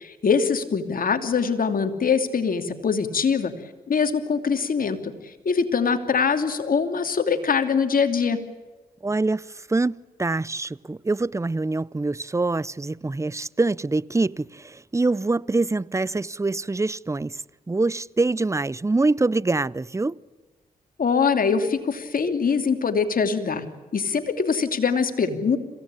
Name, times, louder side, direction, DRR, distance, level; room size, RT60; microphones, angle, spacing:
voice 1, 0.0-3.5 3.9-5.1 5.4-8.4 21.0-23.6 23.9-25.6, left 5 dB, 55° left, 2.8 m, -23 dB
voice 2, 9.0-17.4 17.7-20.2, right 3 dB, 15° right, 0.7 m, -25 dB
27.5 x 17.0 x 9.0 m
supercardioid pair, 50°, 17 cm